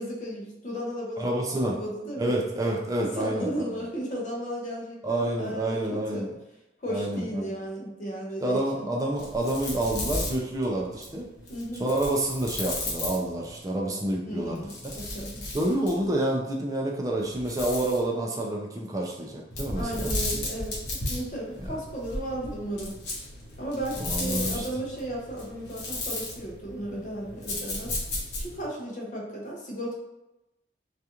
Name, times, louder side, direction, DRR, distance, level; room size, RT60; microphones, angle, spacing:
voice 1, 0.0-2.4 3.0-6.3 6.8-8.9 11.5-11.9 14.3-15.4 19.7-23.0 23.6-28.0 28.4-30.0, right 1 dB, 45° left, -2 dB, 0.6 m, -35 dB
voice 2, 1.2-1.8 2.2-3.5 5.0-6.3 6.9-7.5 8.4-11.3 11.8-14.7 15.5-20.1 21.7-21.8 24.0-24.7, right 1 dB, 20° right, -2 dB, 0.3 m, -28 dB
sound 1, 9.1-13.6 14.4-16.1 17.2-18.1 19.5-28.7, left 2 dB, 80° left, 0.8 m, -35 dB
2.4 x 2.3 x 2.8 m, 0.94 s
head